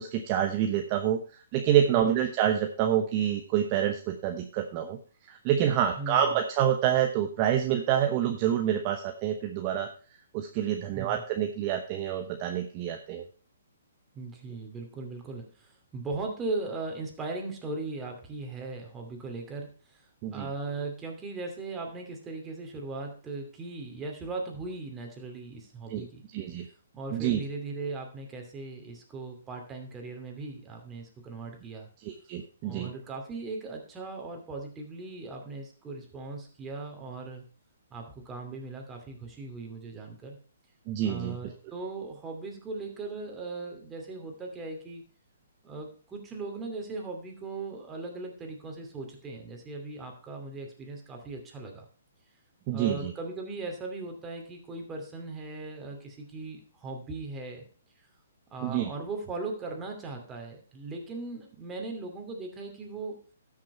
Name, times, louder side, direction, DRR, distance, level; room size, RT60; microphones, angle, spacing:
voice 1, 0.0-5.0 5.3-9.9 10.3-13.3 20.2-20.5 25.9-26.0 26.3-26.6 27.1-27.4 32.0-32.9 40.9-41.4 52.7-53.1 58.6-58.9, right 10 dB, 30° right, 5 dB, 1.0 m, -27 dB
voice 2, 6.0-6.4 10.9-11.2 14.1-20.0 20.3-26.2 26.6-26.7 26.9-31.9 32.6-37.4 37.9-40.4 41.0-45.0 45.6-51.9 52.7-57.6 58.5-63.2, right 3 dB, 15° right, 2 dB, 2.6 m, -38 dB
13.0 x 6.3 x 4.3 m, 0.39 s
hypercardioid pair, 145°, 0 cm